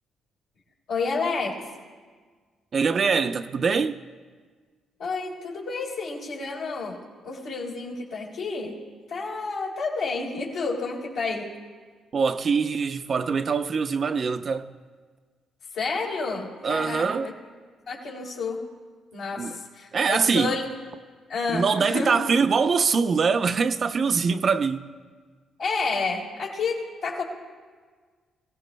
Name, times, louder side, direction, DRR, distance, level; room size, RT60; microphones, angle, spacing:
voice 1, 0.9-1.7 5.0-7.0 7.2-8.8 9.1-11.5 15.7-17.3 17.9-18.6 19.1-20.6 21.3-22.2 25.6-27.2, left 4 dB, 80° left, 3.6 m, -30 dB
voice 2, 2.7-4.0 12.1-14.8 16.6-17.3 19.4-19.6 19.9-20.5 21.5-25.0, right 5 dB, 45° right, 0.6 m, -23 dB
24.5 x 16.5 x 2.2 m
cardioid pair, 90°, 0 cm